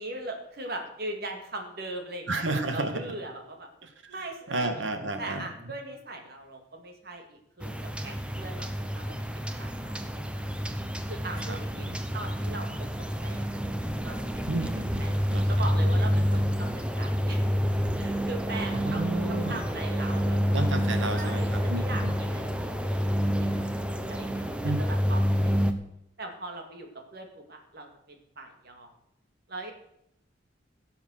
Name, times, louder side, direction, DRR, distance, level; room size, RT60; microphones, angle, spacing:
voice 1, 0.0-3.7 4.1-4.8 5.2-7.7 8.0-9.1 9.6-10.5 11.1-11.9 12.1-12.7 13.0-13.5 14.0-14.7 15.0-15.1 15.5-17.4 17.9-20.6 21.1-23.5 24.1-25.7 26.2-28.9 29.5-29.7, right 2 dB, 55° right, 3 dB, 2.5 m, -40 dB
voice 2, 2.3-3.0 3.8-4.1 4.5-5.5 11.4-12.0 14.5-15.5 18.5-19.6 20.5-22.1 24.6-24.8, right 2 dB, 85° right, 7 dB, 1.8 m, -32 dB
sound 1, 7.6-25.7, equal, 5° right, 0.9 m, -28 dB
16.5 x 7.1 x 6.6 m, 0.77 s
head